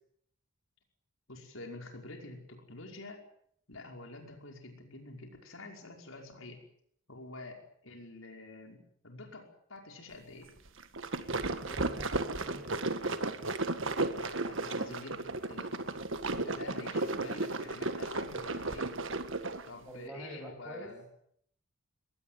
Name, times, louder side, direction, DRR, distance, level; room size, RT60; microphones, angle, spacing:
voice 1, 1.3-3.2 3.7-6.6 7.1-10.5 14.1-15.9 16.4-18.9 19.7-21.0, left 2 dB, 75° left, 3 dB, 5.3 m, -48 dB
sound 1, 10.8-19.7, right 2 dB, 65° right, 1.8 m, -34 dB
voice 2, 11.6-12.7 19.8-20.9, equal, 5° right, 2 dB, 7.6 m, -46 dB
22.5 x 18.5 x 9.3 m, 0.68 s
head